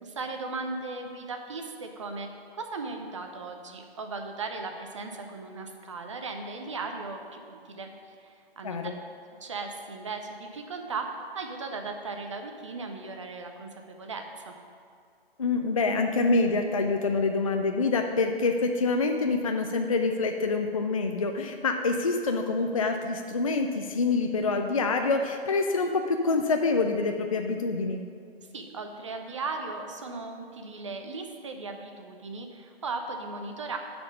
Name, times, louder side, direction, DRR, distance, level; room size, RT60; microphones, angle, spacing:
voice 1, 0.0-2.3 2.5-7.9 8.2-8.8 9.4-14.5 28.5-33.8, right 3 dB, 30° right, 4 dB, 0.6 m, -37 dB
voice 2, 15.4-28.0, left 3 dB, 35° left, 4 dB, 0.4 m, -26 dB
11.5 x 4.3 x 5.5 m, 2.3 s
figure-of-eight pair, 135°, 31 cm